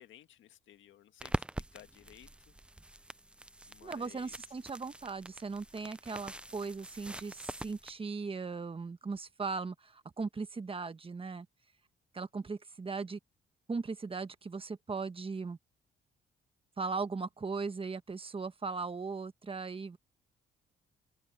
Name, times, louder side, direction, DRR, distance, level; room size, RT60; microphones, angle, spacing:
voice 1, 0.0-2.5 3.1-3.2 3.7-4.3, left 12 dB, 75° left, 1.7 m, -57 dB
sound 1, 1.2-7.9, right 1 dB, 5° right, 0.4 m, -43 dB
voice 2, 3.8-11.5 12.1-13.2 13.7-15.6 16.8-20.0, right 4 dB, 30° right, 1.3 m, -38 dB
cardioid pair, 90°, 20 cm